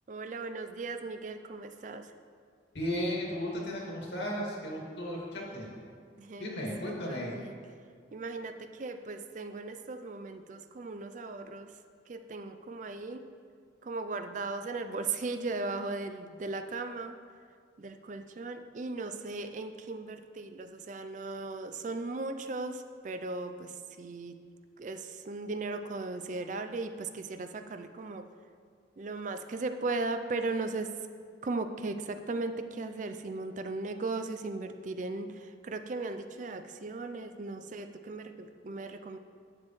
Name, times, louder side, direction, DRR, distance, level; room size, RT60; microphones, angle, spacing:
voice 1, 0.1-2.1 6.2-6.6 6.9-7.6 8.1-11.8 12.1-13.2 13.8-17.2 17.8-24.4 24.8-28.3 29.0-30.9 31.4-39.2, right 3 dB, 45° right, 8 dB, 0.4 m, -37 dB
voice 2, 2.7-5.7 6.4-7.3, equal, 70° left, -3 dB, 2.1 m, -35 dB
11.5 x 7.6 x 3.1 m, 2.1 s
head